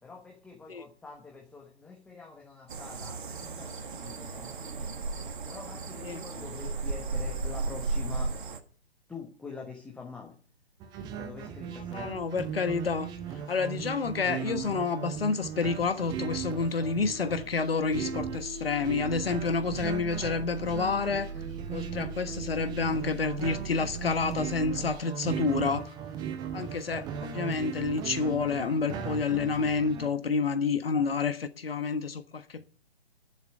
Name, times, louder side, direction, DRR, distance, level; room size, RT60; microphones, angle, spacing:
voice 1, 0.0-4.9 5.5-8.3 9.1-10.3 11.1-12.1, left 4 dB, 5° left, 1.2 m, -45 dB
sound 1, 2.7-8.6, right 3 dB, 50° right, 1.6 m, -35 dB
sound 2, 10.8-30.1, right 8 dB, 15° right, 0.8 m, -38 dB
voice 2, 11.9-13.1 13.5-21.3 21.7-25.9 26.5-32.7, left 4 dB, 65° left, 1.4 m, -29 dB
sound 3, 15.8-25.0, right 4 dB, 90° right, 1.9 m, -41 dB
10.5 x 7.3 x 9.3 m
figure-of-eight pair, 130°, 32 cm